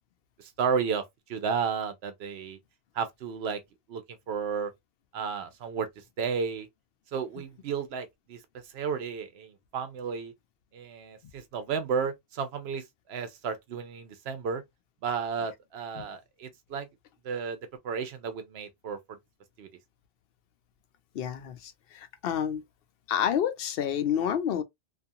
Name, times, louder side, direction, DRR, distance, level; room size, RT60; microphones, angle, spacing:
voice 1, 0.4-1.0 1.3-2.6 2.9-3.6 3.9-4.0 4.3-4.7 5.1-5.9 6.2-6.7 7.1-8.4 8.7-10.3 10.7-14.6 15.0-16.9 17.2-17.6 17.8-19.0 19.6-19.7, right 6 dB, 90° right, 0.9 m, -32 dB
voice 2, 21.1-22.6 23.1-24.6, left 9 dB, 70° left, 0.8 m, -29 dB
2.5 x 2.4 x 2.6 m
omnidirectional pair, 1.0 m